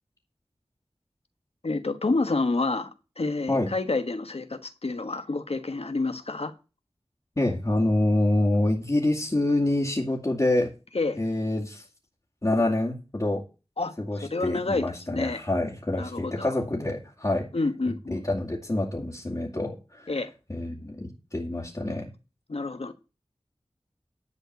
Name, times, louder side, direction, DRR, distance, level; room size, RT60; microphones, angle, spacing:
voice 1, 1.6-2.9 3.2-6.5 10.9-11.2 13.8-13.9 14.2-15.4 16.0-16.5 17.5-18.2 20.1-20.3 22.5-22.9, left 3 dB, 75° left, 1.4 m, -28 dB
voice 2, 7.4-10.7 11.1-11.8 12.4-13.4 14.0-17.5 18.1-20.1 20.5-22.1, left 1 dB, 35° left, 2.5 m, -26 dB
11.0 x 4.5 x 7.9 m
wide cardioid pair, 60°, 10 cm